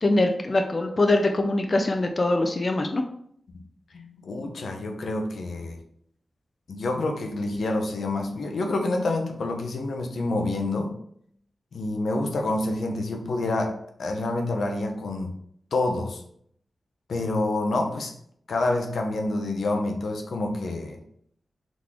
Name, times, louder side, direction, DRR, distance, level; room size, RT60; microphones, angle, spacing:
voice 1, 0.0-3.0, left 2 dB, 40° left, 4 dB, 0.4 m, -23 dB
voice 2, 3.9-5.8 6.7-10.9 11.7-15.3 15.7-16.2 17.1-18.1 18.5-21.0, left 2 dB, 80° left, 3 dB, 0.6 m, -27 dB
3.8 x 3.0 x 3.6 m, 0.68 s
cardioid pair, 65°, 0 cm